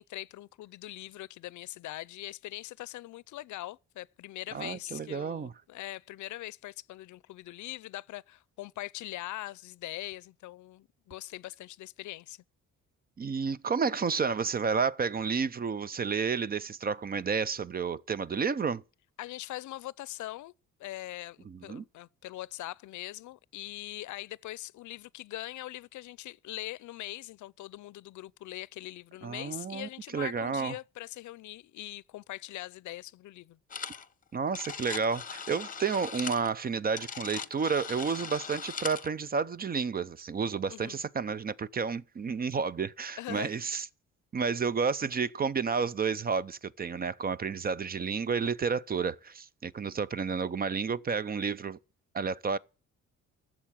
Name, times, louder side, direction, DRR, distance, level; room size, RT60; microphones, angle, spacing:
voice 1, 0.0-12.4 19.2-20.5 20.8-33.6 40.7-41.0 43.2-43.6, left 16 dB, 75° left, 0.6 m, -42 dB
voice 2, 4.5-5.5 13.2-18.8 21.5-21.8 29.2-30.8 34.3-43.9 44.3-51.8 52.1-52.6, right 5 dB, 30° right, 0.5 m, -31 dB
sound 1, 33.7-34.1 34.3-39.1, left 6 dB, 25° left, 0.9 m, -40 dB
13.0 x 7.5 x 7.4 m
cardioid pair, 90°, 30 cm